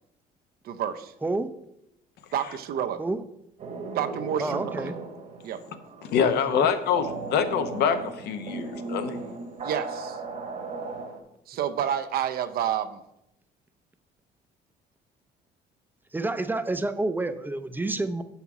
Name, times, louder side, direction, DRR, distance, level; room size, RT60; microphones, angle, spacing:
voice 1, 0.6-1.1 2.3-3.0 3.9-4.7 5.4-5.6 9.6-10.2 11.5-13.0, right 9 dB, 65° right, 9 dB, 0.6 m, -29 dB
sound 1, 3.6-11.2, right 3 dB, 45° right, 1.2 m, -37 dB
voice 2, 4.4-4.9 6.5-6.7 16.1-18.2, right 2 dB, 10° right, 11 dB, 0.5 m, -29 dB
voice 3, 6.1-9.2, left 7 dB, 75° left, 9 dB, 0.8 m, -25 dB
6.9 x 5.7 x 4.8 m, 0.81 s
cardioid pair, 110°, 17 cm